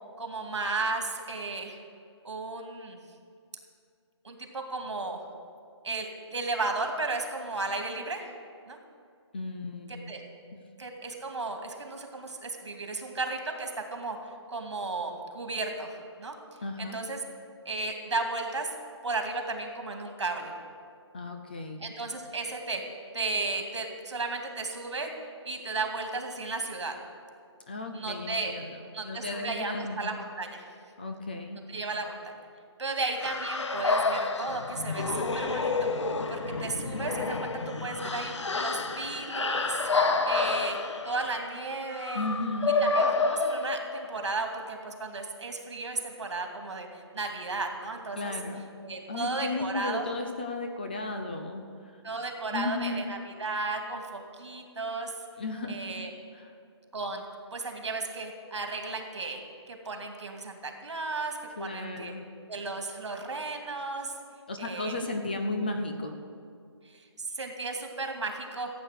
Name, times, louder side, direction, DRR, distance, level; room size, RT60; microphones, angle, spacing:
voice 1, 0.2-1.8 2.2-3.0 4.2-5.3 5.8-8.3 8.7-8.8 10.1-10.2 10.8-14.2 14.5-16.3 16.8-17.2 17.6-18.7 19.0-20.5 21.8-22.8 23.1-25.1 25.4-26.9 27.9-28.5 28.9-30.6 31.7-32.2 32.8-35.9 36.3-39.8 40.2-40.8 41.0-42.3 42.8-48.3 48.8-50.1 52.0-55.1 55.7-56.1 56.9-57.2 57.5-59.4 59.7-62.1 62.5-64.2 64.6-65.0 66.8-68.7, right 3 dB, 75° right, 3 dB, 2.4 m, -34 dB
voice 2, 9.3-10.1 16.6-17.0 21.1-21.8 27.7-28.8 29.0-30.1 31.0-31.6 42.1-42.8 48.1-48.6 49.1-51.6 52.5-53.0 55.4-55.8 56.3-56.5 61.6-62.2 64.5-66.1, left 2 dB, 20° left, 4 dB, 0.6 m, -34 dB
sound 1, 33.2-44.3, left 3 dB, 85° left, 1.1 m, -29 dB
14.5 x 8.3 x 6.7 m, 2.3 s
hypercardioid pair, 175°, 15 cm